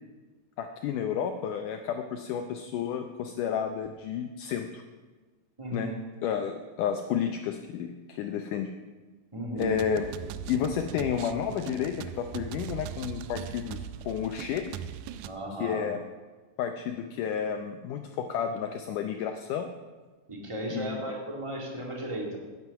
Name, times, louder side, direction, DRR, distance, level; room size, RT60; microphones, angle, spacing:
voice 1, 0.6-4.8 5.7-5.9 6.2-8.7 9.5-10.0 10.5-14.8 15.6-16.0 16.6-19.7 20.7-21.2, left 8 dB, 75° left, 6 dB, 2.0 m, -31 dB
voice 2, 5.6-5.9 9.3-9.8 15.2-15.9 20.3-22.4, right 1 dB, 15° right, 0 dB, 1.1 m, -35 dB
sound 1, 9.6-15.3, right 10 dB, 80° right, 1.9 m, -39 dB
10.0 x 9.5 x 7.0 m, 1.3 s
omnidirectional pair, 4.2 m